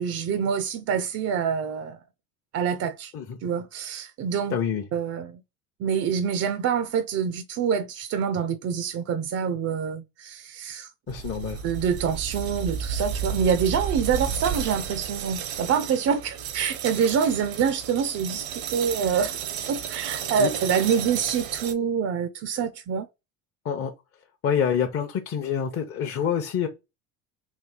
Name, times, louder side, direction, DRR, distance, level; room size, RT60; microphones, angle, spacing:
voice 1, 0.0-2.0 2.5-3.1 3.4-4.5 4.9-5.4 5.8-10.9 11.6-19.4 19.7-23.1, right 7 dB, 40° right, 0.5 m, -26 dB
voice 2, 4.5-4.8 11.1-11.6 20.4-20.5 23.6-23.9 24.4-26.7, left 7 dB, 35° left, 0.8 m, -26 dB
sound 1, 11.1-21.7, right 7 dB, 70° right, 0.8 m, -33 dB
3.4 x 2.7 x 3.8 m
hypercardioid pair, 75°, 41 cm